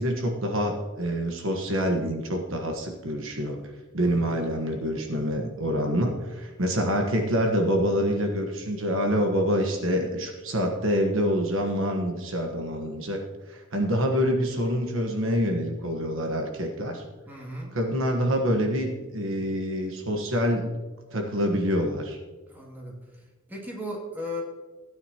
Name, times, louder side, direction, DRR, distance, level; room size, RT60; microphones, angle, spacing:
voice 1, 0.0-3.7 3.9-13.2 13.5-17.0 17.7-20.7 21.1-22.2, equal, 65° right, 3 dB, 1.3 m, -26 dB
voice 2, 4.0-4.4 17.3-17.7 22.5-23.2 23.5-24.4, left 1 dB, 10° right, -3 dB, 2.4 m, -37 dB
16.0 x 9.4 x 2.9 m, 1.3 s
head